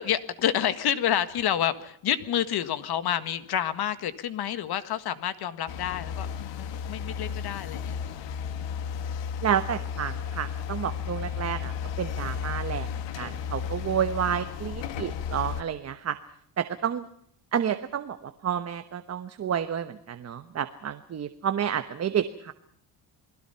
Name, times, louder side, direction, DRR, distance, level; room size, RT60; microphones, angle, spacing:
voice 1, 0.0-8.0, left 10 dB, 60° left, 12 dB, 1.7 m, -29 dB
sound 1, 5.7-15.6, left 7 dB, 85° left, 1.9 m, -34 dB
voice 2, 9.4-11.7 12.0-12.9 13.2-16.2 16.6-17.0 17.5-22.5, right 9 dB, 35° right, 9 dB, 1.1 m, -30 dB
28.5 x 21.0 x 5.7 m, 0.66 s
cardioid pair, 155°, 43 cm